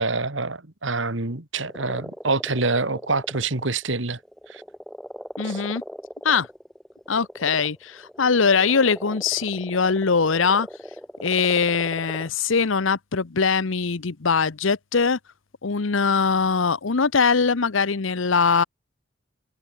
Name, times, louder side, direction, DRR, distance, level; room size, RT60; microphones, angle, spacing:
voice 1, 0.0-4.2 4.5-4.6 5.4-5.6, right 3 dB, 70° right, 2.2 m, -26 dB
sound 1, 1.6-3.8 4.2-12.3, equal, ahead, 6.8 m, -40 dB
voice 2, 5.4-5.8 6.2-6.5 7.1-10.7 11.2-15.2 15.6-18.6, left 5 dB, 80° left, 0.9 m, -22 dB
head